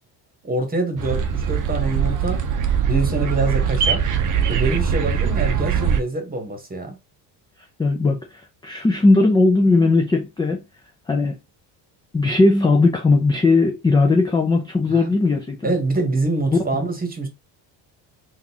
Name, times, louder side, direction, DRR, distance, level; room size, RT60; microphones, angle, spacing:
voice 1, 0.4-2.4 2.9-4.0 4.5-6.9 14.9-15.1 15.6-17.3, right 2 dB, 20° right, 1.2 m, -25 dB
sound 1, 1.0-6.0, right 7 dB, 40° right, 0.6 m, -21 dB
voice 2, 7.8-8.2 8.6-10.6 11.1-11.3 12.1-15.7 16.5-16.6, left 3 dB, 10° left, 0.3 m, -17 dB
3.7 x 2.5 x 2.9 m
cardioid pair, 110°, 49 cm